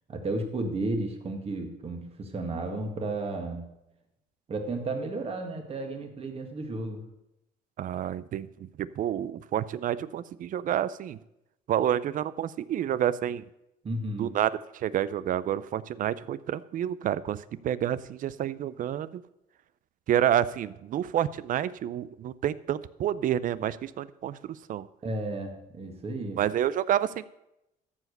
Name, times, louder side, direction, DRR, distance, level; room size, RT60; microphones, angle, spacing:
voice 1, 0.1-3.7 4.5-7.0 13.8-14.3 25.0-26.4, right 2 dB, 35° right, 4 dB, 2.1 m, -33 dB
voice 2, 7.8-11.2 11.7-13.4 14.2-19.2 20.1-24.9 26.4-27.3, right 10 dB, 55° right, 18 dB, 0.5 m, -29 dB
14.0 x 4.9 x 6.6 m, 0.88 s
cardioid pair, 110°, 17 cm